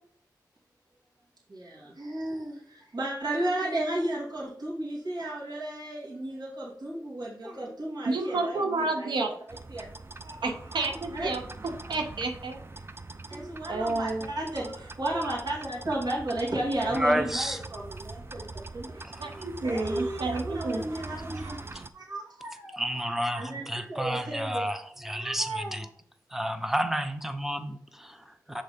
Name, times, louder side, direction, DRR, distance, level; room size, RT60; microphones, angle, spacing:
voice 1, 1.5-9.1 9.7-9.9 10.2-10.4 10.7-11.3 13.3-24.6 25.1-25.7, right 1 dB, 65° right, -5 dB, 2.4 m, -34 dB
voice 2, 8.1-9.3 10.4-12.6 13.7-14.3 19.2-20.8, right 3 dB, 85° right, 4 dB, 0.9 m, -30 dB
sound 1, 9.5-21.9, right 3 dB, 30° right, 0.6 m, -42 dB
voice 3, 16.9-17.6 19.0-19.5 21.7-21.8 22.8-25.9 26.3-28.6, equal, 5° right, 8 dB, 0.8 m, -31 dB
6.5 x 3.9 x 5.1 m, 0.62 s
cardioid pair, 55°, 7 cm